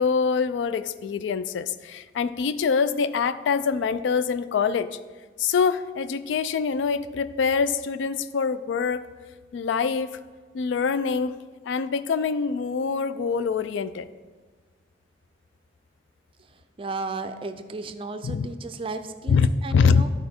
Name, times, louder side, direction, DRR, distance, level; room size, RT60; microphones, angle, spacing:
voice 1, 0.0-5.0 5.4-9.1 9.5-10.2 10.5-11.4 11.7-14.1 18.2-18.5 19.3-20.0, left 5 dB, 85° left, 13 dB, 0.3 m, -24 dB
voice 2, 16.5-20.1, right 3 dB, 30° right, 9 dB, 0.4 m, -35 dB
11.5 x 4.4 x 4.3 m, 1.4 s
head